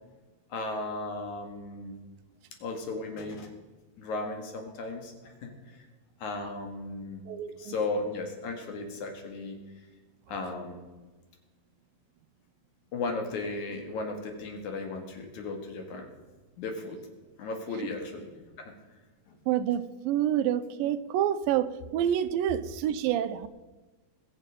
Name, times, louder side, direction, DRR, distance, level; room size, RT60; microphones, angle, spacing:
voice 1, 0.5-2.0 2.6-3.5 4.0-5.9 6.2-7.2 7.6-9.6 10.3-10.8 12.9-16.1 16.6-17.0 17.4-18.3 18.6-18.7 19.3-19.4, left 3 dB, 60° left, 3.1 m, -35 dB
voice 2, 7.3-7.8 19.5-23.5, right 10 dB, 85° right, 2.4 m, -28 dB
20.5 x 7.7 x 5.1 m
omnidirectional pair, 4.0 m